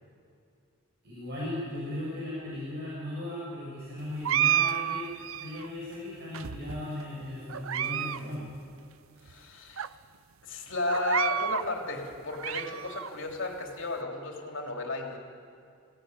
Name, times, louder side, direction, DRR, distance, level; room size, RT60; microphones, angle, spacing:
voice 1, 1.0-5.1 5.3-8.5, left 1 dB, 55° right, -6 dB, 6.5 m, -37 dB
sound 1, 4.2-5.7 6.3-7.0 7.5-8.2 8.5-8.6 9.3-9.4 9.8-9.9 10.9-11.7 12.1-13.1, right 10 dB, 80° right, 0.6 m, -30 dB
voice 2, 9.2-9.9 10.4-15.2, left 2 dB, 65° left, 2 dB, 3.2 m, -33 dB
23.0 x 17.0 x 9.7 m, 2.4 s
head